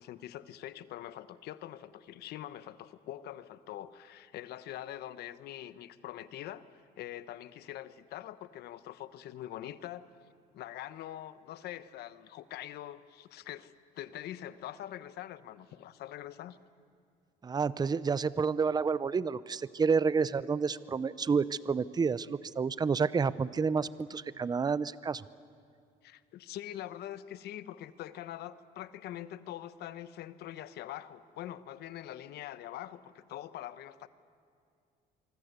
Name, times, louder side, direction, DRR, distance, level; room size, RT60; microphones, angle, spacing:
voice 1, 0.0-6.6 7.0-10.1 10.5-16.6 26.0-34.1, left 12 dB, 75° left, 14 dB, 1.0 m, -44 dB
voice 2, 17.4-25.2, right 5 dB, 25° right, 17 dB, 0.7 m, -29 dB
25.0 x 24.5 x 8.2 m, 2.4 s
cardioid pair, 110°, 17 cm